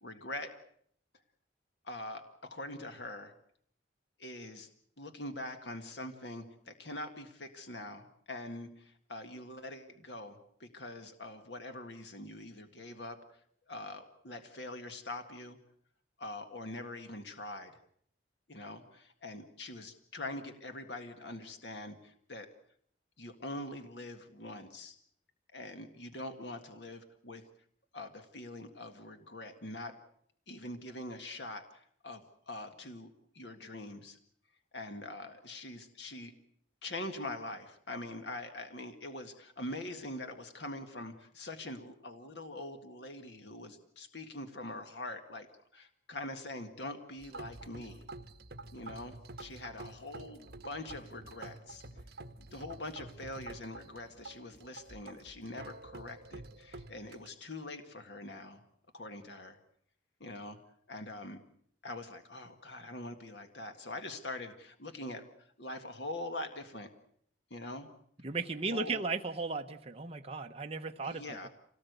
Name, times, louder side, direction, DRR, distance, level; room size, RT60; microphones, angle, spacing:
voice 1, 0.0-0.5 1.8-3.3 4.2-4.7 5.0-13.2 13.7-15.6 16.2-17.7 18.5-22.5 23.2-25.0 25.5-27.4 27.9-30.0 30.5-33.1 33.3-34.2 34.7-36.3 36.8-45.5 45.7-48.0 48.7-51.8 52.5-58.6 58.9-59.6 60.2-60.6 60.9-61.4 61.8-66.9 67.5-67.9 68.7-69.0 71.0-71.5, left 2 dB, 65° left, 7 dB, 1.8 m, -43 dB
sound 1, 47.2-57.3, right 2 dB, 55° right, 1.4 m, -49 dB
voice 2, 68.2-71.5, right 4 dB, 35° right, 4 dB, 1.0 m, -36 dB
27.0 x 18.5 x 8.1 m, 0.66 s
head